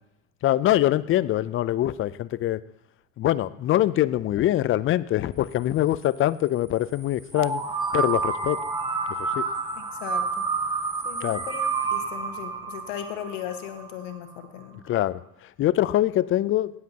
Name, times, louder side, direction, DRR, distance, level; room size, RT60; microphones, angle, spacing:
voice 1, 0.4-2.6 3.2-7.6 7.9-8.6 9.2-9.4 11.2-11.4 14.9-16.7, left 14 dB, 35° left, 17 dB, 0.4 m, -24 dB
sound 1, 7.3-14.1, right 4 dB, 10° right, 1.2 m, -29 dB
voice 2, 9.7-10.5 11.0-11.6 11.9-14.8, left 10 dB, 70° left, 6 dB, 1.5 m, -37 dB
18.0 x 7.6 x 2.8 m, 0.85 s
hypercardioid pair, 80°, 40 cm